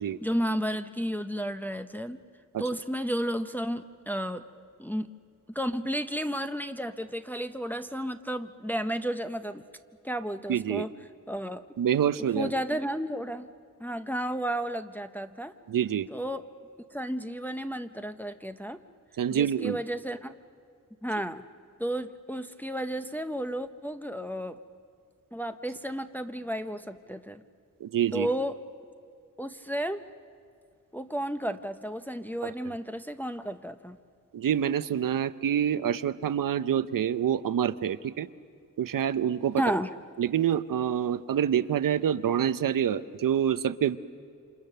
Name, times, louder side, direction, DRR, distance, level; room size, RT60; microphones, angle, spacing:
voice 1, 0.2-2.2 2.6-4.4 4.8-5.1 5.6-9.6 10.0-10.9 11.3-11.6 12.4-13.5 13.8-15.5 16.1-16.4 16.9-18.8 19.3-20.3 21.0-21.4 21.8-24.6 25.3-27.4 28.1-28.5 29.4-30.0 30.9-34.0 39.6-39.9, equal, 5° left, 8 dB, 0.6 m, -32 dB
voice 2, 10.5-10.9 11.8-12.6 15.7-16.1 19.2-19.8 27.8-28.3 32.4-32.7 34.3-38.3 38.8-39.6 40.2-44.0, right 9 dB, 90° right, 14 dB, 0.7 m, -27 dB
28.5 x 26.5 x 6.7 m, 2.3 s
wide cardioid pair, 140°, 32 cm